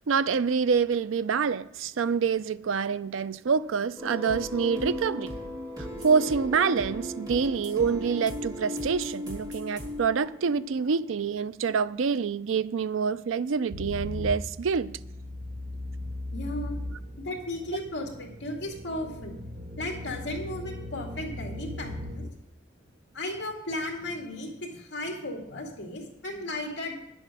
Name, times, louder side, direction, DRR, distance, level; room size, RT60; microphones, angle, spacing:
voice 1, 0.0-5.3 6.0-14.9, right 5 dB, 80° right, 0.4 m, -26 dB
sound 1, 4.0-11.3, equal, 20° right, 2.9 m, -36 dB
sound 2, 13.7-22.3, left 1 dB, 45° right, 0.8 m, -38 dB
voice 2, 16.3-16.8 17.2-19.4 19.8-22.3 23.1-26.9, left 1 dB, 65° left, 2.2 m, -35 dB
9.9 x 8.0 x 6.0 m
head